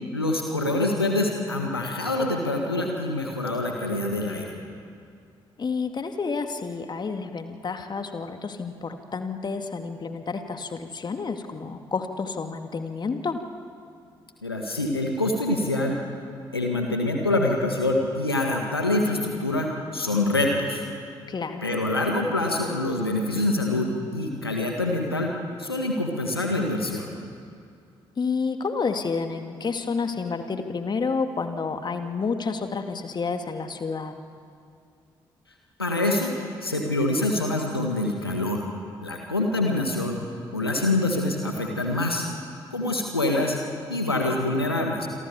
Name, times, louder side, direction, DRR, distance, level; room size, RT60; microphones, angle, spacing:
voice 1, 0.1-4.6 14.4-16.0 16.5-20.8 21.6-23.9 24.1-25.3 25.6-27.1 35.8-36.3 36.6-38.7 39.0-40.2 40.5-42.3 42.7-43.6 43.9-45.1, left 2 dB, 90° left, 1 dB, 1.7 m, -25 dB
voice 2, 5.6-13.4 21.3-21.7 28.2-34.2, left 4 dB, 35° left, 6 dB, 2.2 m, -30 dB
27.5 x 24.0 x 7.0 m, 2.4 s
figure-of-eight pair, 40°, 12 cm